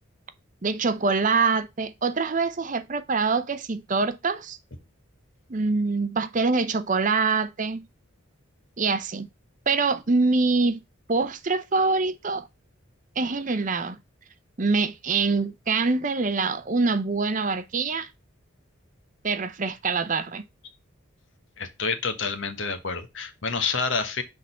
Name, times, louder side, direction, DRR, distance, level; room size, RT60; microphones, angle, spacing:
voice 1, 0.6-4.6 5.5-7.8 8.8-9.3 9.7-10.8 11.1-12.5 13.2-14.0 14.6-18.1 19.2-20.4, right 4 dB, 35° right, 0.6 m, -24 dB
voice 2, 21.6-24.2, left 5 dB, 65° left, 1.1 m, -28 dB
6.2 x 3.7 x 5.6 m
head